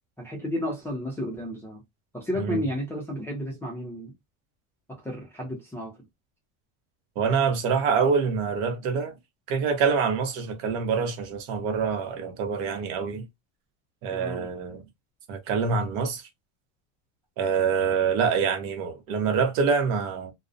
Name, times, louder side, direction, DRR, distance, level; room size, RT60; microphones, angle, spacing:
voice 1, 0.2-1.8 2.1-4.1 4.9-5.9 14.1-14.5, equal, 5° left, 0.4 m, -32 dB
voice 2, 7.2-9.1 9.5-13.3 14.0-14.8 15.3-16.2 17.4-20.3, right 5 dB, 60° right, 0.8 m, -25 dB
2.4 x 2.0 x 2.5 m
cardioid pair, 150°, 41 cm